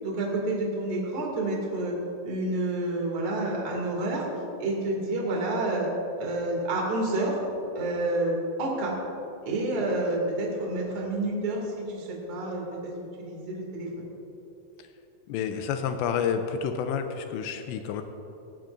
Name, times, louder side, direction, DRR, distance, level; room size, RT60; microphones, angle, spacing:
voice 1, 0.0-1.9 2.2-4.2 4.6-5.9 6.2-7.4 7.7-8.9 9.4-12.9 13.2-13.9, right 2 dB, 35° right, -2 dB, 2.3 m, -29 dB
voice 2, 15.3-18.0, left 7 dB, 85° left, 7 dB, 2.5 m, -29 dB
18.0 x 16.0 x 2.6 m, 2.9 s
omnidirectional pair, 5.8 m